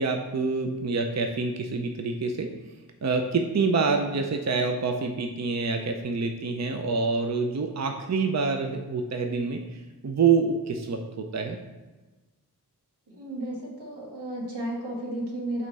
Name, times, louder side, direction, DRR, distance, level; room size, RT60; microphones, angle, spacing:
voice 1, 0.0-2.5 3.0-11.6, right 4 dB, 45° right, 4 dB, 0.6 m, -26 dB
voice 2, 13.1-15.7, right 1 dB, 85° right, -3 dB, 1.6 m, -33 dB
5.6 x 3.1 x 5.4 m, 1.2 s
cardioid pair, 50°, 39 cm